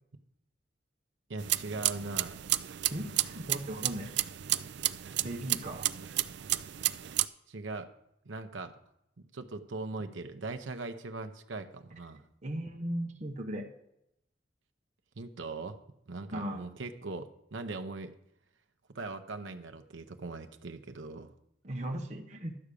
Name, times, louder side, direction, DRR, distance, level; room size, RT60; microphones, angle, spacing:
voice 1, 1.3-2.4 7.5-7.9 8.3-8.7 9.2-12.2 15.2-15.8 16.1-18.1 18.9-21.3, right 3 dB, 85° right, 7 dB, 0.8 m, -40 dB
sound 1, 1.4-7.3, right 15 dB, 65° right, 0.4 m, -32 dB
voice 2, 2.9-4.1 5.2-5.9 12.4-13.7 16.3-16.7 21.6-22.6, right 1 dB, 40° right, 0 dB, 1.0 m, -37 dB
12.0 x 5.0 x 8.3 m, 0.79 s
head